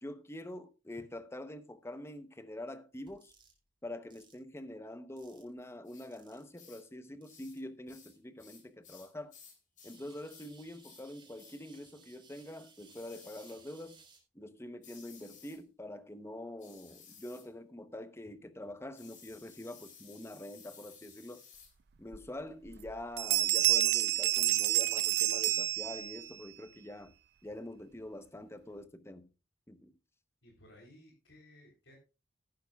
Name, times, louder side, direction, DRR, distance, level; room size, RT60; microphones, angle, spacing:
voice 1, 0.0-3.3 3.8-9.3 9.8-14.0 14.3-21.4 22.0-27.1 27.4-29.3 29.7-29.9, left 1 dB, 15° left, 0.9 m, -45 dB
sound 1, 3.0-3.5 4.1-4.3 5.2-5.5 6.1-6.5 7.2-7.6 8.1-8.2 9.8-14.2, right 5 dB, 25° right, 3.4 m, -61 dB
sound 2, 5.9-6.1 6.5-6.9 7.2-7.6 7.9-10.0 10.3-10.5 10.8-11.1 11.4-11.6 12.9-13.6 14.8-15.6 16.6-17.5 19.0-21.7, left 6 dB, 45° left, 3.3 m, -57 dB
sound 3, 22.1-22.2 22.7-22.9 23.2-26.3, right 15 dB, 60° right, 0.5 m, -29 dB
voice 2, 30.4-32.0, left 1 dB, 75° left, 3.5 m, -58 dB
14.0 x 11.5 x 2.3 m
head